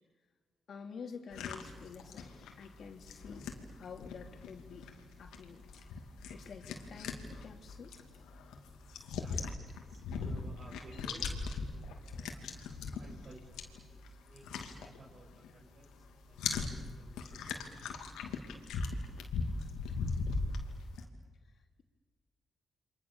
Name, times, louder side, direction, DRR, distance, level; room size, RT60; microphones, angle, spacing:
voice 1, 0.7-2.3 2.6-3.5 3.8-4.9 5.2-5.6 6.3-8.0 21.4-21.8, left 5 dB, 65° left, 5 dB, 3.1 m, -49 dB
sound 1, 1.3-15.6 15.8-21.0, left 4 dB, 85° left, 2.7 m, -40 dB
voice 2, 9.1-12.4 13.0-13.6 13.9-15.9 16.3-18.0, right 2 dB, 60° right, -2 dB, 6.0 m, -57 dB
29.5 x 25.0 x 7.1 m, 1.4 s
supercardioid pair, 50°, 0 cm